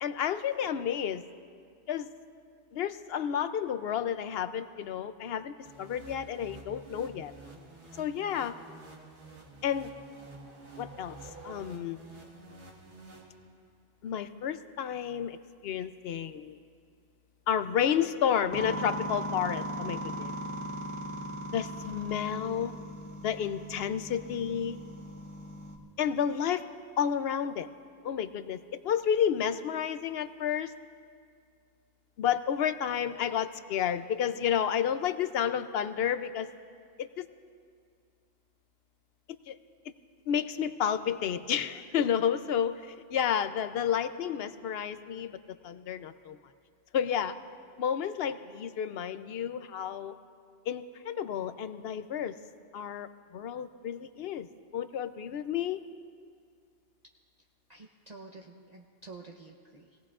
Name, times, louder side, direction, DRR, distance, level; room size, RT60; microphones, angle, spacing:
voice 1, 0.0-1.2 1.9-2.1 2.7-7.3 8.0-8.5 9.6-9.9 10.8-11.2 11.4-12.0 14.0-15.4 15.6-16.6 17.5-20.3 21.5-22.7 23.2-24.8 26.0-26.6 27.0-27.7 28.0-30.7 32.2-36.5 37.0-37.3 39.5-39.6 40.3-45.4 45.6-46.4 46.9-47.4 47.8-50.2 50.7-52.4 52.7-54.5 54.7-55.8, left 8 dB, 65° left, 11 dB, 0.8 m, -31 dB
sound 1, 5.7-13.8, right 2 dB, 90° right, 1.9 m, -50 dB
sound 2, 8.9-12.2, right 3 dB, 65° right, 1.9 m, -53 dB
sound 3, 18.5-25.8, equal, 25° left, 1.6 m, -38 dB
voice 2, 57.7-60.0, right 3 dB, 40° right, 0 dB, 0.8 m, -49 dB
25.0 x 18.0 x 2.5 m, 2.2 s
omnidirectional pair, 1.1 m